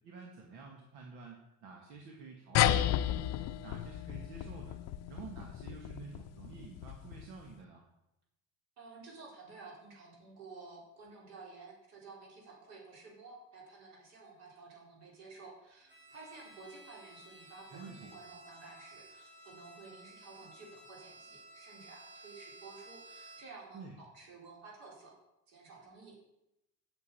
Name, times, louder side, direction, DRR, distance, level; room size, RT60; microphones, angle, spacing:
voice 1, 0.0-3.3 3.6-4.8 5.1-7.8 17.7-18.1 23.7-24.0, right 4 dB, 75° right, 0 dB, 1.9 m, -49 dB
sound 1, 2.5-7.4, left 12 dB, 55° left, 0.6 m, -33 dB
voice 2, 8.8-25.2 25.5-26.2, right 4 dB, 60° right, -2 dB, 4.2 m, -52 dB
Bowed string instrument, 15.9-23.7, right 2 dB, 35° right, 4.3 m, -55 dB
8.5 x 7.3 x 8.5 m, 0.89 s
cardioid pair, 175°, 31 cm